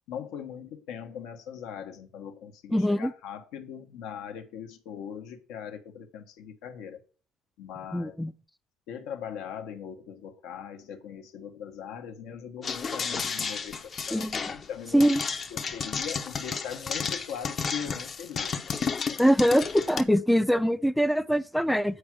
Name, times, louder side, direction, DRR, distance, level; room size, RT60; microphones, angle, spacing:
voice 1, 0.1-7.0 7.6-8.2 8.9-18.6 19.0-19.2, left 8 dB, 75° left, 1.3 m, -40 dB
voice 2, 2.7-3.1 7.9-8.3 14.1-14.4 14.9-15.2 19.2-22.0, equal, ahead, 0.3 m, -23 dB
sound 1, 12.6-20.0, left 5 dB, 30° left, 0.7 m, -32 dB
8.8 x 4.8 x 6.2 m
cardioid pair, 150°, 0 cm